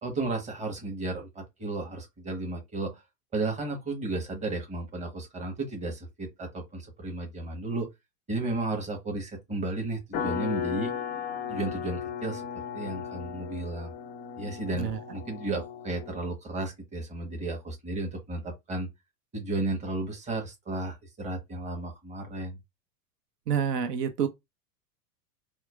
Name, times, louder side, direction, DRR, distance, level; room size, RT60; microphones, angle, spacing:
voice 1, 0.0-3.0 3.3-7.9 8.3-10.9 11.5-13.9 14.4-18.9 19.3-22.6, right 2 dB, 15° right, 1.1 m, -33 dB
sound 1, 10.1-16.3, left 7 dB, 20° left, 0.4 m, -36 dB
voice 2, 23.5-24.3, right 8 dB, 75° right, 0.7 m, -28 dB
4.4 x 2.0 x 2.3 m
hypercardioid pair, 100°, 48 cm